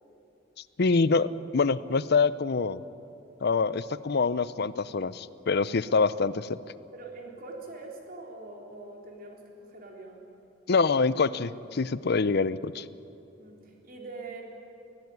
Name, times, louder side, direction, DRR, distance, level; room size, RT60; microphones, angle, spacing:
voice 1, 0.8-2.8 3.4-6.6 10.7-12.8, left 4 dB, 55° left, 17 dB, 0.6 m, -25 dB
voice 2, 6.9-10.3 13.4-14.4, right 3 dB, 50° right, 0 dB, 3.7 m, -43 dB
21.5 x 16.5 x 9.6 m, 2.8 s
head